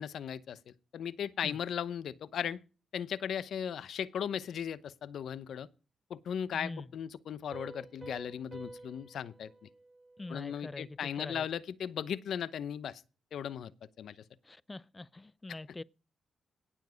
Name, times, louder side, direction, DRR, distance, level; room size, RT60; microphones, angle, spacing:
voice 1, 0.0-2.6 2.9-5.7 6.1-9.5 10.3-13.0 13.3-13.7 14.0-14.2, left 8 dB, 75° left, 0.8 m, -37 dB
voice 2, 6.5-6.9 10.2-11.5 14.4-15.8, left 2 dB, 20° left, 0.6 m, -44 dB
Piano, 7.5-10.9, right 2 dB, 25° right, 6.3 m, -50 dB
17.5 x 7.3 x 5.1 m
cardioid pair, 100°, 0 cm